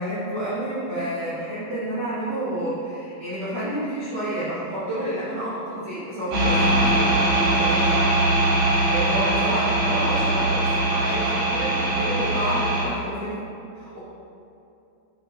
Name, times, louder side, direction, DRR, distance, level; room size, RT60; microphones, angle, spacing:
voice 1, 0.0-8.0 8.4-13.3 13.8-14.0, right 1 dB, 80° right, -12 dB, 0.9 m, -29 dB
sound 1, 6.3-12.8, right 1 dB, 55° right, 2.2 m, -21 dB
8.1 x 5.8 x 2.9 m, 2.7 s
omnidirectional pair, 4.4 m